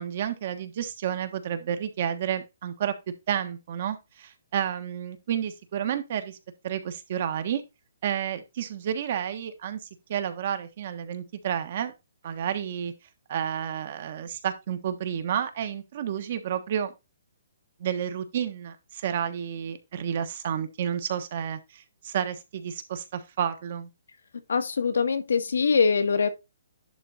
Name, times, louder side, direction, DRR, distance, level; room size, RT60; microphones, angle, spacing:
voice 1, 0.0-2.9 3.3-6.4 6.6-7.6 8.0-11.9 12.2-12.9 13.3-16.9 17.8-23.9, right 9 dB, 40° right, 1.3 m, -31 dB
voice 2, 24.5-26.3, left 5 dB, 85° left, 1.7 m, -23 dB
11.0 x 3.8 x 4.2 m
hypercardioid pair, 170°, 0 cm